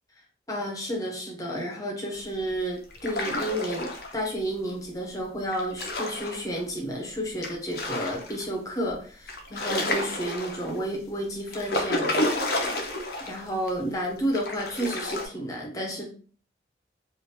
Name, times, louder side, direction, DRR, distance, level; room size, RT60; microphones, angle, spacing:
voice 1, 0.5-12.3 13.2-16.1, equal, 20° left, -1 dB, 0.7 m, -31 dB
sound 1, 2.9-4.3 5.5-6.6 7.4-8.4 8.9-9.0 9.3-10.8 11.5-13.4 13.7-13.8 14.3-15.3, left 1 dB, 55° left, 0.6 m, -30 dB
3.2 x 2.5 x 2.8 m, 0.43 s
head